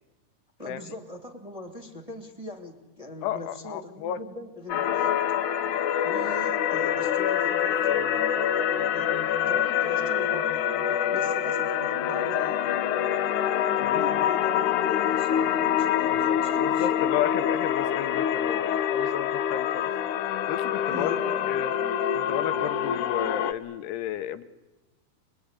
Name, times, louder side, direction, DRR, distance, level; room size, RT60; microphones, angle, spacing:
voice 1, 0.6-5.2 6.0-12.6 13.8-16.9 20.9-21.5, left 2 dB, 15° right, 2 dB, 1.7 m, -41 dB
voice 2, 3.2-4.2 7.9-8.2 13.8-14.0 16.4-19.9 20.5-21.2 21.5-21.7 22.1-24.4, left 11 dB, 90° left, 12 dB, 3.1 m, -32 dB
sound 1, 4.7-23.5, left 9 dB, 70° left, 2.0 m, -26 dB
26.5 x 22.0 x 9.8 m, 1.2 s
omnidirectional pair, 4.5 m